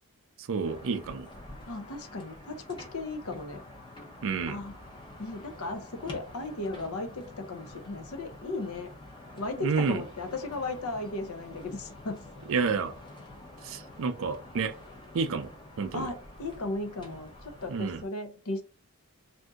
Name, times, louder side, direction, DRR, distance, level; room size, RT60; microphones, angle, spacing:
voice 1, 0.4-1.3 4.2-4.6 9.6-10.0 12.5-12.9 13.6-14.7 15.1-15.5 15.8-16.1 17.7-18.0, right 5 dB, 60° right, 0.5 m, -29 dB
sound 1, 0.6-18.0, left 1 dB, 20° left, 0.8 m, -48 dB
voice 2, 1.7-3.6 4.5-4.8 5.2-8.9 9.4-12.2 15.9-18.6, left 2 dB, 65° left, 0.7 m, -36 dB
2.7 x 2.6 x 3.4 m
head